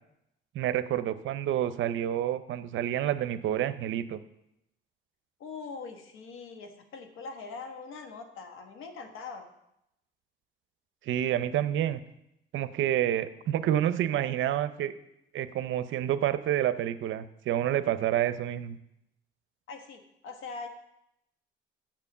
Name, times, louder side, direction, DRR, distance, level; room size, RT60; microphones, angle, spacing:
voice 1, 0.5-4.2 11.1-12.0 12.5-14.9 15.3-18.8, right 11 dB, 75° right, 13 dB, 0.6 m, -28 dB
voice 2, 5.4-9.5 19.7-20.7, left 4 dB, 90° left, 5 dB, 1.2 m, -42 dB
6.9 x 5.8 x 7.2 m, 0.82 s
cardioid pair, 90°, 20 cm